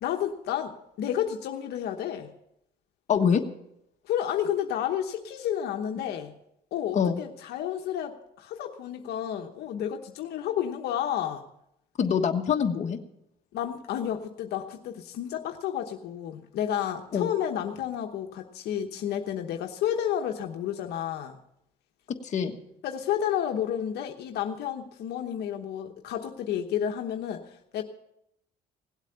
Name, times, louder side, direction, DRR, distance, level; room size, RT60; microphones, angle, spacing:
voice 1, 0.0-2.3 4.0-6.3 6.7-11.4 13.5-21.4 22.8-27.8, left 10 dB, 75° left, 4 dB, 1.1 m, -31 dB
voice 2, 3.1-3.4 6.9-7.2 12.0-13.0 17.1-17.3 22.2-22.6, left 7 dB, 45° left, 3 dB, 1.4 m, -24 dB
17.5 x 8.2 x 6.8 m, 0.79 s
cardioid pair, 110°, 17 cm